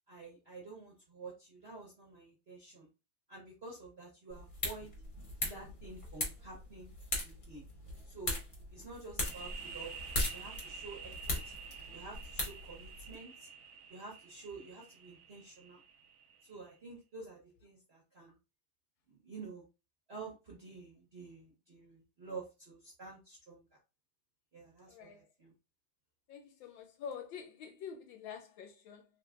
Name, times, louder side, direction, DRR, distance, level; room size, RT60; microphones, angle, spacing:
voice 1, 0.1-2.9 3.3-4.9 5.4-6.9 7.2-7.6 8.1-8.4 8.7-9.9 10.3-11.5 11.9-13.5 13.9-15.8 16.5-18.4 19.1-19.6 20.1-23.6 24.5-25.5, right 3 dB, 50° right, 0.7 m, -49 dB
sound 1, 4.3-13.1, left 1 dB, 35° left, 0.8 m, -40 dB
sound 2, 9.2-16.7, right 5 dB, 75° right, 1.3 m, -49 dB
voice 2, 24.9-25.2 26.3-29.0, left 7 dB, 75° left, 1.2 m, -46 dB
3.6 x 3.0 x 2.4 m
omnidirectional pair, 2.4 m